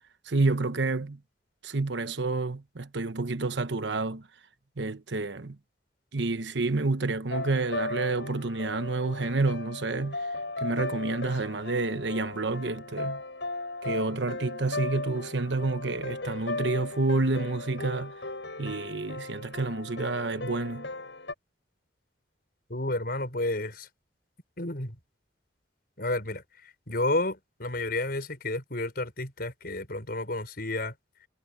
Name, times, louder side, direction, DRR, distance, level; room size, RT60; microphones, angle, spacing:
voice 1, 0.3-1.2 1.6-4.2 4.8-5.6 6.1-10.2 10.6-13.2 13.8-18.1 18.6-20.9, right 3 dB, 85° right, 1.1 m, -29 dB
sound 1, 7.3-21.3, left 2 dB, 80° left, 7.2 m, -37 dB
voice 2, 22.7-23.9 24.6-25.0 26.0-30.9, left 2 dB, 60° left, 5.6 m, -31 dB
head